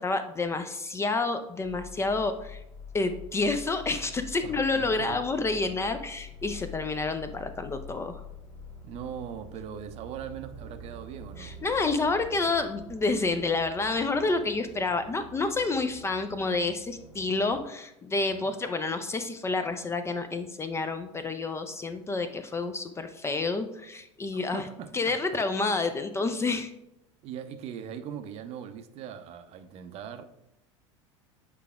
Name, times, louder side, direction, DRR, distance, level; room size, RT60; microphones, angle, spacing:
voice 1, 0.0-2.6 2.9-8.2 11.4-24.7 24.9-26.7, left 3 dB, 15° left, 9 dB, 0.4 m, -29 dB
sound 1, 1.6-17.7, left 2 dB, 80° left, 1.1 m, -46 dB
voice 2, 4.4-5.2 8.8-11.5 18.2-18.5 24.3-25.1 27.2-30.2, right 8 dB, 40° right, 9 dB, 0.6 m, -40 dB
8.3 x 4.8 x 2.3 m, 0.85 s
figure-of-eight pair, 75°, 16 cm